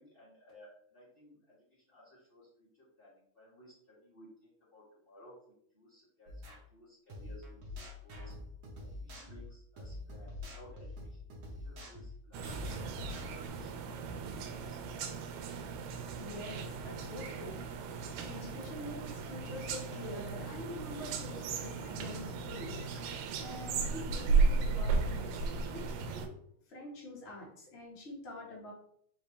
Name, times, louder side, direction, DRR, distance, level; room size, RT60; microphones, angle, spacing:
voice 1, 0.0-5.4 5.7-6.4 6.7-8.3 8.8-11.2 11.6-12.6 13.0-15.1, left 1 dB, 25° left, -13 dB, 1.2 m, -58 dB
sound 1, 6.3-6.6 7.1-13.5, left 2 dB, 65° right, 1.6 m, -45 dB
sound 2, 12.3-26.3, right 4 dB, 85° right, 2.2 m, -35 dB
voice 2, 15.9-26.4 26.7-28.7, left 1 dB, 80° left, -5 dB, 0.5 m, -46 dB
4.9 x 3.3 x 3.1 m, 0.66 s
omnidirectional pair, 3.7 m